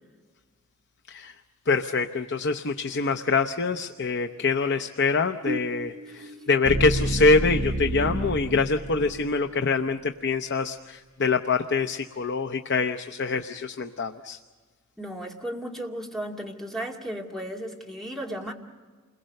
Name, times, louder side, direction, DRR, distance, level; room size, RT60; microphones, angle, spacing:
voice 1, 1.7-14.4, left 4 dB, 55° left, 7 dB, 0.7 m, -25 dB
sound 1, 5.5-9.5, right 1 dB, 50° right, 1.5 m, -30 dB
voice 2, 15.0-18.5, right 1 dB, ahead, -1 dB, 2.3 m, -35 dB
29.0 x 22.0 x 6.5 m, 1.4 s
head